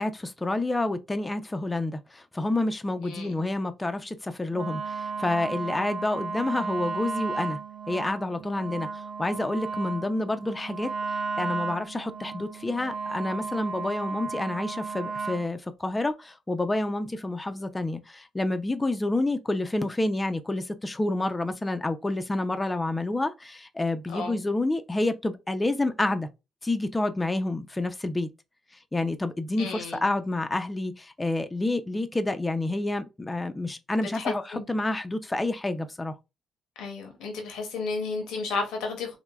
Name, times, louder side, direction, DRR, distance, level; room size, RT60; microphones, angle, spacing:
voice 1, 0.0-7.6 7.9-8.9 9.2-10.9 11.4-26.3 26.6-28.3 28.9-36.1, left 2 dB, 15° left, 0.3 m, -28 dB
voice 2, 3.0-3.5 24.1-24.4 29.6-30.0 34.1-34.6 36.8-39.2, left 4 dB, 90° left, 0.6 m, -33 dB
Wind instrument woodwind instrument, 4.5-15.5, right 4 dB, 45° right, 0.6 m, -34 dB
3.2 x 2.0 x 2.2 m
cardioid pair, 90°, 0 cm